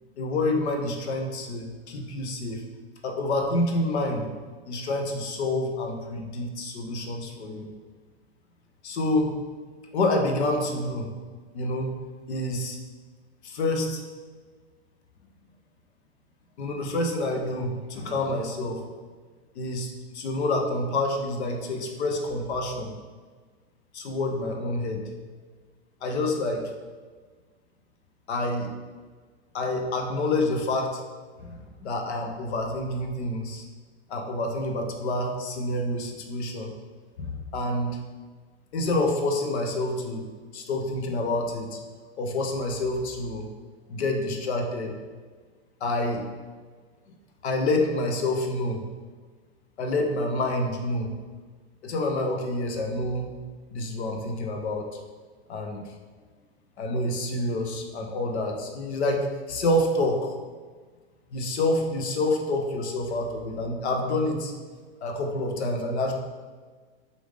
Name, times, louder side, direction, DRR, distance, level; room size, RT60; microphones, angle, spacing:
voice 1, 0.2-2.6 3.0-4.3 4.7-7.7 8.8-9.4 9.9-11.1 11.5-11.9 12.3-12.8 13.4-14.0 16.6-18.8 19.6-22.9 23.9-25.0 26.0-26.7 28.3-28.7 29.5-31.0 31.4-33.7 34.1-36.7 37.2-38.0 38.7-40.3 40.5-41.8 42.2-43.5 43.9-45.0 45.8-46.2 47.4-48.8 49.8-51.1 51.8-53.3 53.7-54.9 55.5-55.8 56.8-60.3 61.3-64.5 65.0-66.1, left 2 dB, 85° left, 3 dB, 0.8 m, -28 dB
4.7 x 2.6 x 3.5 m, 1.5 s
hypercardioid pair, 140°, 32 cm